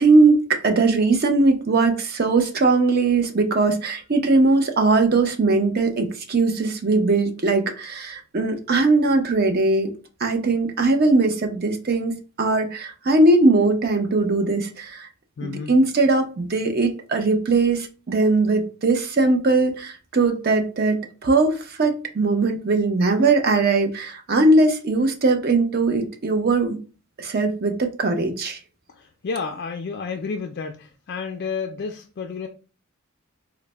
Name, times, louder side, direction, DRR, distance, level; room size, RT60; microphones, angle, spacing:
voice 1, 0.0-9.9 10.2-15.1 15.4-26.8 27.2-28.6, right 3 dB, 45° right, 6 dB, 0.6 m, -20 dB
voice 2, 15.4-15.7 29.2-32.5, left 5 dB, 50° left, 4 dB, 0.3 m, -30 dB
3.9 x 2.0 x 3.2 m, 0.35 s
head